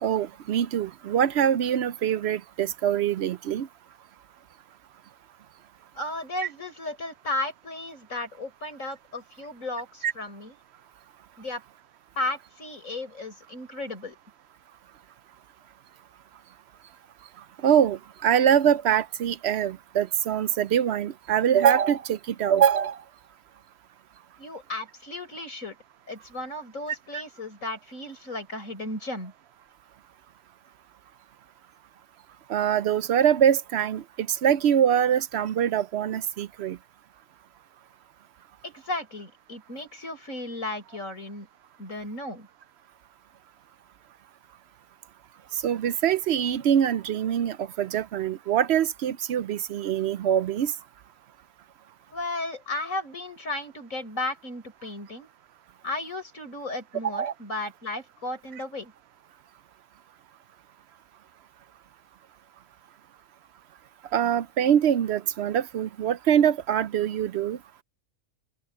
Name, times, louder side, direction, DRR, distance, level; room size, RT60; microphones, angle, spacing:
voice 1, 0.0-3.7 10.0-10.1 17.6-23.0 27.1-27.2 32.5-36.8 45.5-50.7 57.1-57.3 64.1-67.6, right 9 dB, 65° right, 0.7 m, -24 dB
voice 2, 5.9-10.6 11.4-11.6 12.2-14.2 24.4-25.8 26.1-29.3 38.6-41.5 41.8-42.5 52.1-55.3 55.8-58.9, left 2 dB, 70° left, 6.4 m, -34 dB
open air
omnidirectional pair, 1.4 m